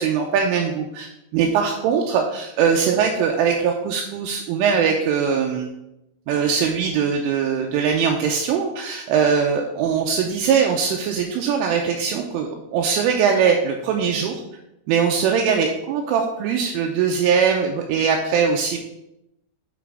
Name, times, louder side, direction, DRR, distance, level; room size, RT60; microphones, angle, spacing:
voice 1, 0.0-5.7 6.3-14.4 14.9-18.8, right 6 dB, 80° right, 2 dB, 3.0 m, -21 dB
8.1 x 5.0 x 4.8 m, 0.87 s
omnidirectional pair, 6.0 m